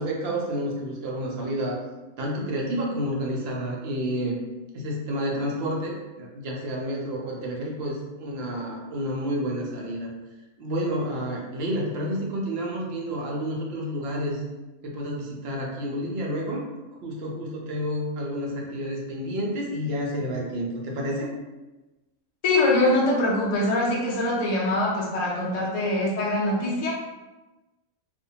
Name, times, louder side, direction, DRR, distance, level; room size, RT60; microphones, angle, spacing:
voice 1, 0.0-1.8 2.2-4.4 4.7-10.1 10.6-14.4 14.8-16.6 17.0-21.3, equal, 70° right, -2 dB, 0.6 m, -30 dB
voice 2, 22.4-26.9, left 2 dB, 65° left, -5 dB, 0.4 m, -23 dB
2.5 x 2.1 x 2.7 m, 1.1 s
omnidirectional pair, 1.6 m